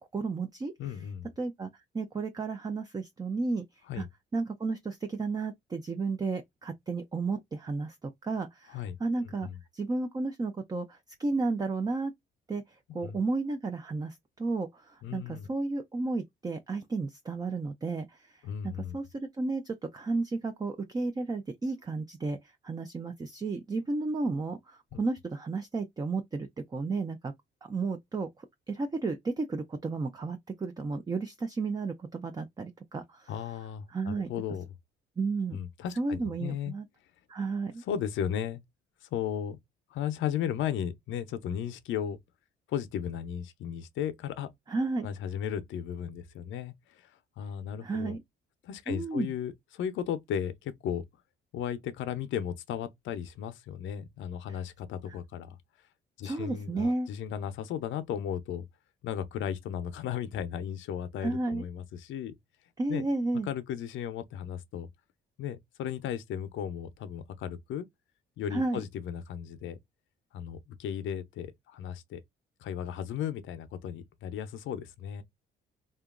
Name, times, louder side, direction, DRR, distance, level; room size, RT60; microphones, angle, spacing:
voice 1, 0.1-0.7 1.4-1.7 1.9-3.6 3.9-4.0 4.3-9.5 9.7-12.1 12.5-22.4 22.6-27.3 27.7-33.3 33.9-34.3 35.2-35.6 36.0-36.9 37.3-37.8 44.7-45.1 47.8-48.2 48.9-49.3 55.1-55.2 56.2-57.1 61.2-61.6 62.8-63.5 68.5-68.8, right 3 dB, 20° right, 0.4 m, -33 dB
voice 2, 0.8-1.3 3.9-4.1 8.7-9.0 9.4-9.6 13.0-13.2 15.0-15.5 18.4-19.0 24.9-25.0 33.3-34.6 35.5-36.7 37.9-38.6 39.0-39.6 39.9-42.2 42.7-44.5 45.0-47.1 47.4-48.2 48.6-51.0 51.5-55.6 56.2-58.7 59.0-62.4 62.9-63.0 63.4-64.9 65.4-67.9 68.4-69.8 70.3-72.2 72.6-75.2, left 9 dB, 80° left, 0.5 m, -35 dB
2.8 x 2.3 x 2.3 m
cardioid pair, 90°, 20 cm